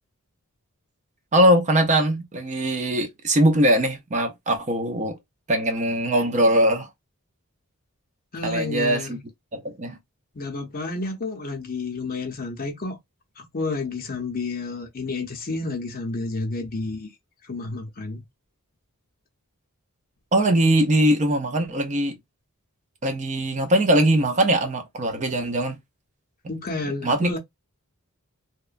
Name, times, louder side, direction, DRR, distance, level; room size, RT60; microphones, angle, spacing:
voice 1, 1.3-5.2 5.5-6.9 8.4-9.2 9.5-10.0 20.3-22.2 23.0-25.8 26.8-27.4, right 1 dB, 35° right, 0.5 m, -21 dB
voice 2, 8.3-9.1 10.3-13.0 13.4-17.1 17.5-18.2 26.5-27.4, left 3 dB, 40° left, 0.6 m, -30 dB
2.8 x 2.1 x 2.4 m
head